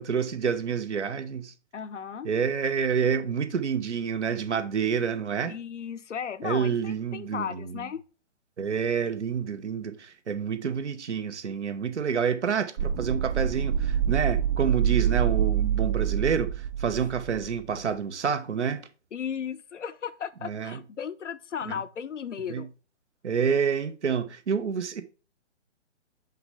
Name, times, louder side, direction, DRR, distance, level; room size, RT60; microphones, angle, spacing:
voice 1, 0.0-1.5 2.2-5.5 6.4-7.9 8.6-18.9 20.4-20.8 21.7-21.8 22.5-22.7 23.2-25.0, right 6 dB, 70° right, 1.0 m, -28 dB
voice 2, 1.7-2.3 5.5-8.0 15.0-15.1 19.1-22.7, left 7 dB, 75° left, 0.7 m, -35 dB
sound 1, 12.8-17.6, right 9 dB, 45° right, 0.5 m, -26 dB
5.8 x 5.6 x 3.3 m
figure-of-eight pair, 130°, 36 cm